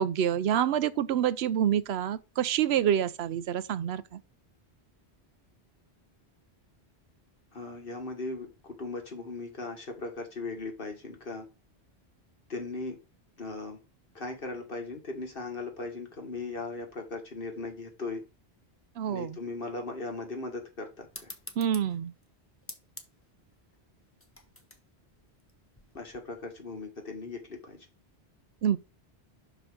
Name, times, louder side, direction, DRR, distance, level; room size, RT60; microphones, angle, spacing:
voice 1, 0.0-4.2 19.0-19.4 21.6-22.1 28.6-28.8, right 9 dB, 75° right, 0.8 m, -27 dB
voice 2, 7.5-11.5 12.5-13.0 13.4-13.8 14.2-18.2 19.1-21.3 26.0-27.9, left 3 dB, 60° left, 2.0 m, -38 dB
sound 1, 21.1-26.2, left 1 dB, 15° left, 1.0 m, -49 dB
6.0 x 5.0 x 4.9 m
omnidirectional pair, 1.1 m